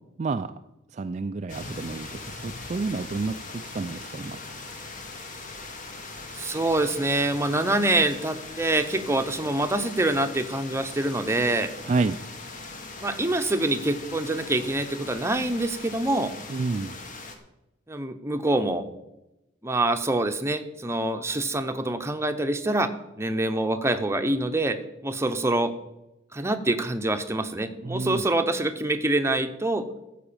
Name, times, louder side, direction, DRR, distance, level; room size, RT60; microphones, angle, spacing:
voice 1, 0.2-0.5 0.9-4.4 11.8-12.2 16.5-17.0 27.8-28.2, right 3 dB, 35° right, 7 dB, 0.4 m, -29 dB
sound 1, 1.5-17.4, left 3 dB, 40° left, 1.5 m, -40 dB
voice 2, 6.3-11.7 13.0-16.3 17.9-18.9 19.6-22.9 23.2-25.7 26.3-29.9, right 2 dB, 15° right, 7 dB, 0.8 m, -25 dB
14.0 x 5.0 x 8.6 m, 0.93 s
head